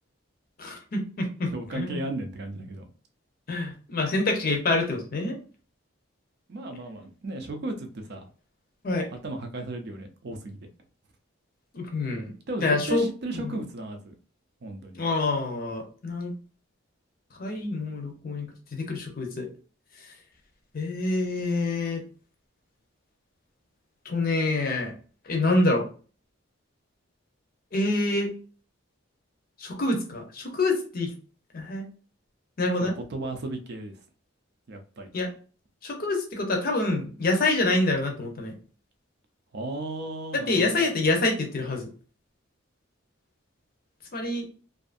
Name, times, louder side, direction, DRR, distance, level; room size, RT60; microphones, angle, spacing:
voice 1, 0.6-2.0 3.5-5.4 8.8-9.1 11.7-12.3 12.6-13.1 14.9-16.3 17.4-19.5 20.7-22.0 24.1-24.9 25.2-25.8 27.7-28.3 29.6-31.1 31.5-31.9 32.6-32.9 35.1-35.3 35.8-38.5 40.3-41.9 44.1-44.5, left 2 dB, 45° left, 2 dB, 0.6 m, -26 dB
voice 2, 1.5-2.9 6.5-8.2 9.2-10.7 12.5-14.2 14.6-15.0 32.8-34.0 34.7-35.1 39.5-40.9, right 2 dB, 50° right, 5 dB, 0.4 m, -35 dB
2.6 x 2.4 x 2.4 m, 0.39 s
head